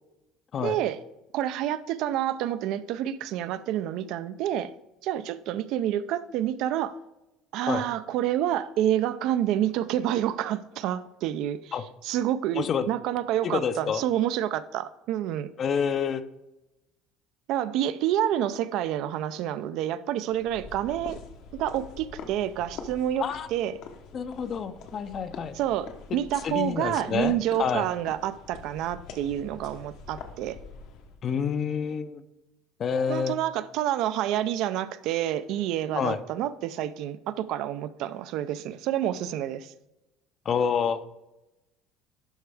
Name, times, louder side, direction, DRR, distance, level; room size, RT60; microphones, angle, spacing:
voice 1, 0.6-1.0 1.3-4.7 5.0-7.0 7.5-11.7 12.0-15.5 17.5-21.2 21.5-23.8 25.5-30.6 33.1-39.7, right 11 dB, 60° right, 0.4 m, -28 dB
voice 2, 12.6-12.9 13.4-14.0 15.6-16.2 23.2-23.5 24.1-25.6 26.1-27.9 31.2-32.2 32.8-33.3 36.0-36.2 40.5-41.0, left 7 dB, 35° left, 0.5 m, -28 dB
sound 1, 20.3-31.2, left 5 dB, 65° left, 1.0 m, -45 dB
11.5 x 4.5 x 3.4 m
cardioid pair, 150°, 0 cm